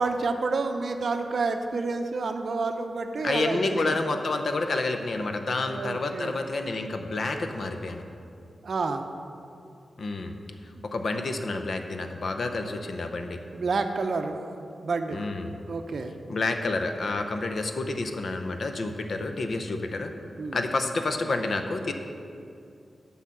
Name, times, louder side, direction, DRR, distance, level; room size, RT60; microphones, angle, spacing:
voice 1, 0.0-3.9 5.7-6.4 8.6-9.0 10.8-10.9 13.5-15.2 15.6-16.1 20.4-20.6, right 3 dB, 55° right, 6 dB, 0.6 m, -29 dB
voice 2, 3.2-8.0 10.0-10.3 10.8-13.4 15.1-15.6 16.3-20.1 20.5-21.9, left 3 dB, 50° left, 6 dB, 0.7 m, -29 dB
8.1 x 5.6 x 7.5 m, 2.5 s
wide cardioid pair, 160°, 0 cm